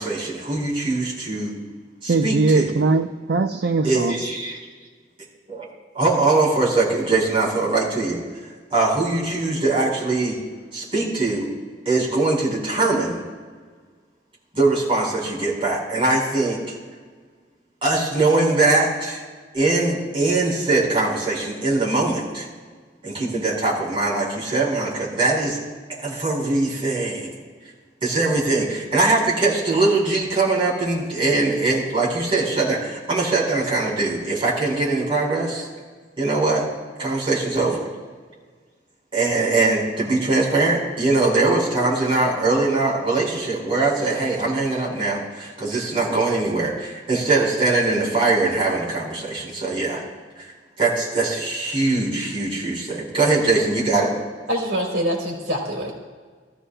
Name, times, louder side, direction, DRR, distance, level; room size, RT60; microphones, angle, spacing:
voice 1, 0.0-1.5 2.0-2.7 3.8-4.6 5.5-5.6 5.9-8.2 8.7-10.4 10.7-11.5 11.8-13.2 14.5-16.7 17.8-19.2 19.5-22.5 23.0-25.6 25.9-27.3 28.0-35.7 36.2-36.6 37.0-37.8 39.1-50.0 50.4-50.5 50.8-54.1, right 3 dB, 30° right, -5 dB, 4.6 m, -21 dB
voice 2, 2.1-4.2, right 3 dB, 65° right, 8 dB, 0.5 m, -20 dB
voice 3, 54.5-55.9, equal, 80° right, -2 dB, 3.3 m, -24 dB
21.5 x 14.5 x 2.2 m, 1.5 s
head